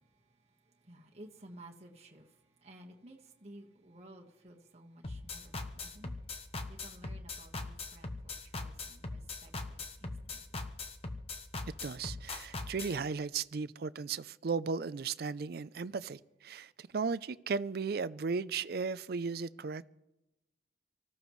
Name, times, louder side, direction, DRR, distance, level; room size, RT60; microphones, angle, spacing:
voice 1, 0.0-6.2 6.7-10.4, right 1 dB, 35° right, 1.4 m, -55 dB
sound 1, 5.0-13.0, left 3 dB, 35° left, 1.0 m, -40 dB
voice 2, 11.8-19.9, right 5 dB, 55° right, 0.4 m, -36 dB
24.5 x 14.5 x 3.2 m
head